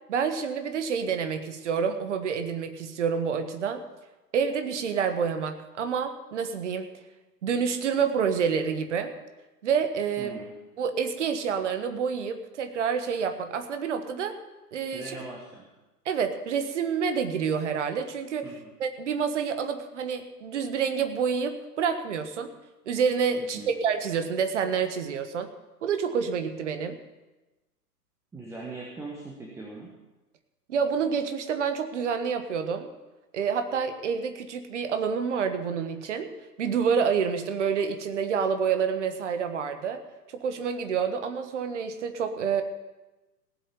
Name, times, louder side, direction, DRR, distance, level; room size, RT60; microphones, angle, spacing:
voice 1, 0.1-3.8 4.3-6.9 7.4-9.1 9.6-10.3 10.8-14.4 14.7-15.1 16.0-18.5 18.8-22.5 22.8-25.5 25.8-27.0 30.7-32.9 33.3-36.3 36.6-40.0 40.3-42.6, right 6 dB, 45° right, 8 dB, 1.4 m, -28 dB
voice 2, 10.2-10.5 14.9-15.7 18.4-18.7 23.4-23.7 28.3-29.9, right 3 dB, 5° right, -2 dB, 1.2 m, -40 dB
17.0 x 7.7 x 6.9 m, 1.1 s
figure-of-eight pair, 115°, 48 cm